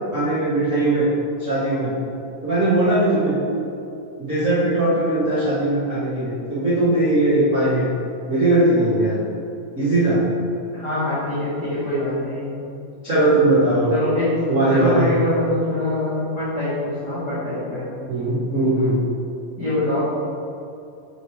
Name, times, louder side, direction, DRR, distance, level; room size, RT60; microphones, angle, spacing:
voice 1, 0.1-1.1 1.4-1.9 2.4-3.3 4.2-7.9 8.3-9.1 9.8-10.2 13.0-13.9 14.5-15.1 18.1-19.0, right 2 dB, 50° right, -13 dB, 0.8 m, -19 dB
voice 2, 10.7-12.5 13.9-14.4 14.7-17.9 19.6-20.0, left 1 dB, 70° left, -11 dB, 0.9 m, -24 dB
5.0 x 4.1 x 4.6 m, 2.6 s
omnidirectional pair, 4.0 m